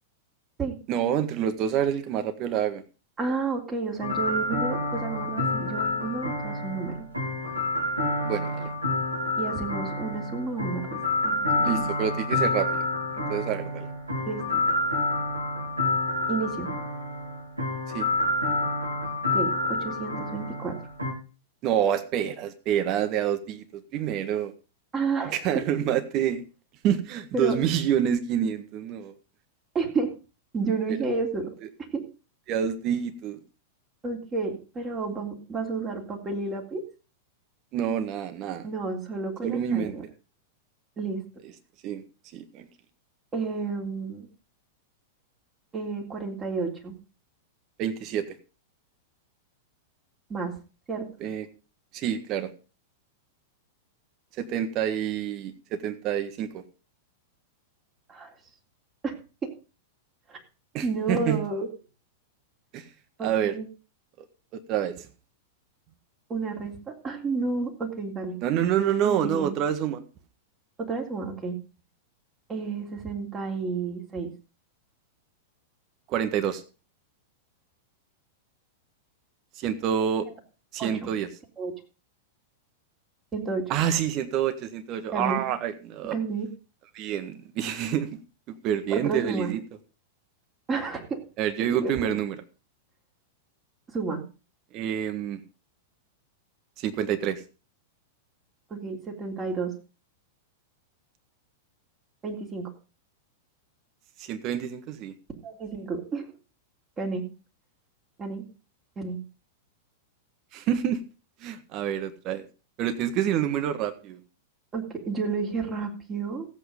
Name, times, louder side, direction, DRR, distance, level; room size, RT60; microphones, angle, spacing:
voice 1, 0.9-2.8 8.2-8.7 11.6-12.9 13.3-13.9 17.9-18.0 21.6-24.5 25.3-26.4 26.8-29.1 31.6-31.7 32.5-33.4 37.7-38.7 39.4-39.9 41.8-42.0 42.3-42.7 47.8-48.4 51.2-51.4 51.9-52.5 54.4-56.6 60.7-61.4 62.7-62.9 63.2-63.5 64.2-64.3 64.7-65.1 68.4-70.0 76.1-76.6 79.5-80.3 80.7-81.3 83.7-86.2 86.9-88.2 88.5-89.6 91.4-92.3 94.7-95.4 96.8-97.4 104.2-105.1 110.5-111.0 111.4-112.5 112.8-114.2, right 9 dB, 35° right, 9 dB, 1.7 m, -27 dB
voice 2, 3.2-6.9 9.4-11.9 14.3-14.6 16.3-16.7 19.3-20.7 24.9-25.6 27.3-27.6 29.7-30.2 30.5-31.5 31.9-32.0 34.0-36.8 38.6-40.0 41.0-41.2 43.3-44.3 45.7-47.0 50.3-50.6 50.9-51.1 58.1-58.3 59.0-59.1 59.4-59.5 60.3-60.4 60.8-61.7 63.2-63.7 66.3-68.4 69.0-69.6 70.8-71.6 72.5-74.3 80.8-81.1 81.6-81.7 83.3-83.7 85.1-85.4 86.1-86.5 88.9-89.6 90.7-91.2 91.6-92.1 93.9-94.2 98.7-99.7 102.2-102.7 105.4-106.3 107.0-107.3 108.2-108.4 109.0-109.2 114.7-116.5, right 4 dB, 20° right, 1 dB, 3.5 m, -31 dB
sound 1, 4.0-21.1, left 2 dB, 85° right, 3.7 m, -28 dB
15.5 x 8.3 x 5.2 m, 0.34 s
figure-of-eight pair, 95°, 0 cm